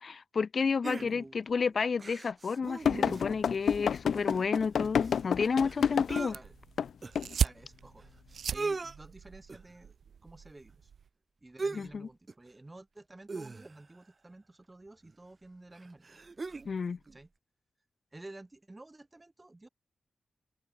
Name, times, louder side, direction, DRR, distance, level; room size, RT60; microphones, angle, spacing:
voice 1, 0.0-6.3 11.7-12.1 16.6-17.0, left 5 dB, 60° left, 1.0 m, -31 dB
sound 1, 0.8-1.5 2.0-3.4 3.8-3.9 4.1-6.3 7.0-7.1 8.0-8.1 8.3-8.9 9.5-9.8 11.6-12.0 12.3-12.5 13.3-14.0 15.0-15.1 15.7-16.7 17.1-17.2, right 3 dB, 40° right, 1.6 m, -39 dB
voice 2, 1.0-2.0 6.3-6.5 7.3-8.0 8.5-10.9 11.4-16.2 17.1-17.3 18.1-19.7, right 2 dB, 20° right, 6.1 m, -52 dB
sound 2, 2.9-6.3 6.8-6.9 7.2-7.3, left 7 dB, 85° left, 0.6 m, -29 dB
sound 3, 6.1-11.1, right 7 dB, 90° right, 1.5 m, -37 dB
wide cardioid pair, 90°, 0 cm